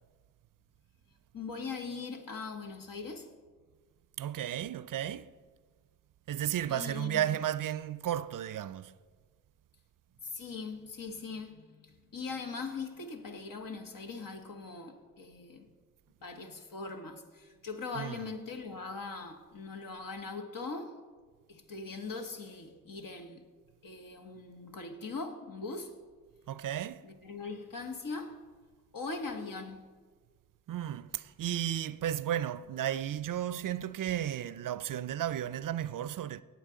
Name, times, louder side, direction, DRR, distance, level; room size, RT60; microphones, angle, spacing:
voice 1, 1.3-3.3 6.7-7.4 10.2-15.7 16.2-21.0 21.5-23.5 23.8-26.0 27.0-28.4 28.9-29.9, left 4 dB, 65° left, 1.2 m, -41 dB
voice 2, 4.2-5.3 6.3-8.9 18.0-18.2 26.5-27.1 30.7-36.4, right 11 dB, 60° right, 0.5 m, -34 dB
17.5 x 8.2 x 3.7 m
cardioid pair, 45°, 36 cm